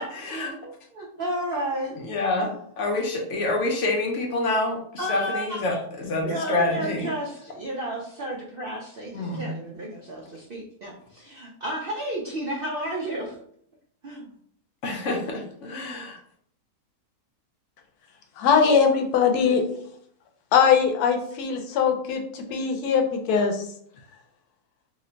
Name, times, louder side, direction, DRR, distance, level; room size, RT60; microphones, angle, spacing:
voice 1, 0.6-2.0 2.4-2.5 5.0-13.4 14.0-14.3, right 1 dB, 80° right, -2 dB, 0.5 m, -32 dB
voice 2, 2.1-2.5 2.8-4.8 5.1-5.7 6.0-7.0 9.1-9.5 14.8-16.2, left 2 dB, 60° left, 1 dB, 0.9 m, -26 dB
voice 3, 18.4-19.6 20.5-23.6, left 6 dB, 85° left, 4 dB, 1.1 m, -21 dB
2.9 x 2.1 x 3.7 m, 0.66 s
omnidirectional pair, 1.6 m